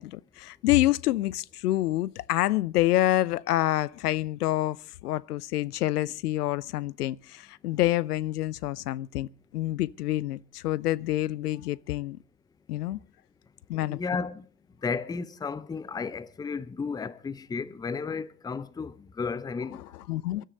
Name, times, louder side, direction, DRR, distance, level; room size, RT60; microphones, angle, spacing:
voice 1, 0.0-12.2 12.7-13.0 13.7-14.0 20.1-20.4, left 15 dB, 65° left, 0.7 m, -27 dB
voice 2, 13.9-14.5 14.8-20.1, left 5 dB, 10° left, 0.7 m, -33 dB
23.5 x 13.0 x 4.0 m
figure-of-eight pair, 90°, 50 cm